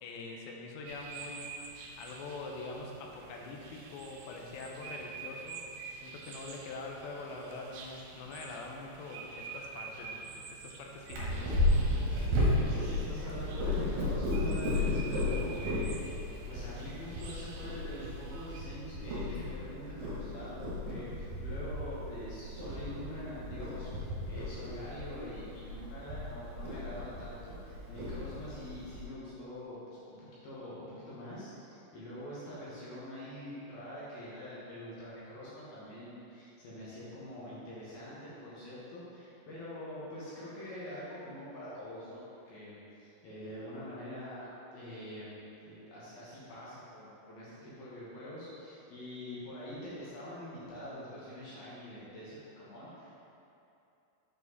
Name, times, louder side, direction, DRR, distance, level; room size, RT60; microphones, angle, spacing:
voice 1, 0.0-1.6 2.0-5.6 6.0-11.6, left 3 dB, 85° left, 0 dB, 2.9 m, -44 dB
sound 1, 0.8-18.6, right 5 dB, 85° right, 2.4 m, -48 dB
Purr, 11.1-29.0, left 1 dB, 65° right, 2.7 m, -34 dB
voice 2, 12.5-16.2 16.4-45.3 45.6-53.2, left 1 dB, 65° left, -9 dB, 2.9 m, -45 dB
8.1 x 4.9 x 4.0 m, 2.8 s
omnidirectional pair, 5.2 m